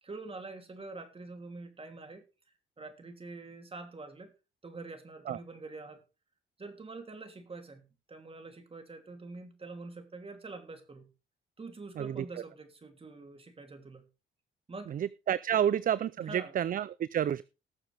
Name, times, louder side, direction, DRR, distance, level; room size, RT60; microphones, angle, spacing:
voice 1, 0.0-2.2 2.8-4.3 4.6-6.0 6.6-11.1 11.6-14.1 14.7-15.0 16.3-16.5, right 3 dB, 30° right, 6 dB, 3.1 m, -45 dB
voice 2, 14.9-17.4, right 9 dB, 45° right, 19 dB, 0.5 m, -30 dB
19.0 x 7.0 x 3.5 m, 0.30 s
cardioid pair, 90°, 20 cm